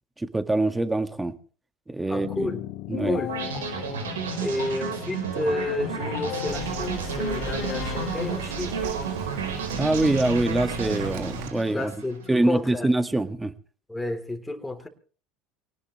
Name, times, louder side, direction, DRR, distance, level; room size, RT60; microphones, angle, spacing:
voice 1, 0.2-1.3 1.9-2.5 2.9-3.2 9.7-11.9 12.3-13.5, right 2 dB, 10° right, 9 dB, 1.8 m, -24 dB
voice 2, 2.1-2.7 3.0-3.4 4.4-8.8 11.7-12.9 13.9-14.9, left 2 dB, 10° left, 3 dB, 3.5 m, -31 dB
sound 1, 2.2-9.0, left 15 dB, 60° left, 1.5 m, -36 dB
sound 2, 3.3-12.3, right 5 dB, 85° right, 4.5 m, -32 dB
Bird vocalization bird call bird song, 6.5-11.5, right 5 dB, 70° right, 2.7 m, -36 dB
23.0 x 19.0 x 3.2 m, 0.41 s
hypercardioid pair, 80°, 0 cm